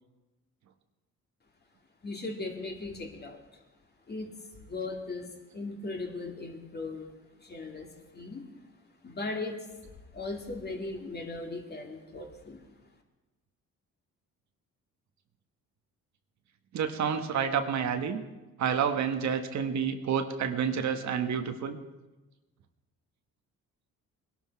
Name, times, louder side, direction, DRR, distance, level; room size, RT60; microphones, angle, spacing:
voice 1, 2.0-3.4 4.1-4.3 4.6-7.1 7.4-8.5 9.0-9.7 10.1-12.6, left 3 dB, 35° left, 2 dB, 2.4 m, -38 dB
voice 2, 16.7-18.2 18.6-21.8, right 7 dB, 65° right, 7 dB, 1.4 m, -29 dB
20.0 x 12.0 x 4.7 m, 1.1 s
cardioid pair, 90°, 30 cm